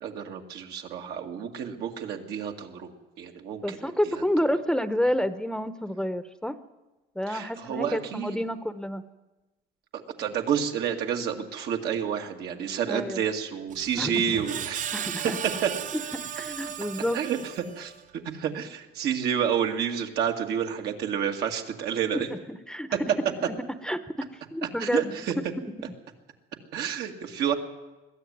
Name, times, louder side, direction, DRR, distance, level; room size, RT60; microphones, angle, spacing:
voice 1, 0.0-3.8 7.3-8.4 9.9-14.9 15.6-15.7 17.1-17.4 17.8-22.3 24.8-25.3 26.7-27.5, right 8 dB, 75° right, 3 dB, 2.2 m, -29 dB
voice 2, 3.6-6.6 7.1-9.1 12.9-13.2 14.0-14.4 14.9-15.4 15.9-16.0 16.3-17.2 22.1-22.9 23.8-25.2, equal, 5° left, 12 dB, 0.8 m, -29 dB
Screech, 13.7-18.0, right 9 dB, 50° right, 0.6 m, -36 dB
21.5 x 13.5 x 9.4 m, 1.1 s
cardioid pair, 110°, 17 cm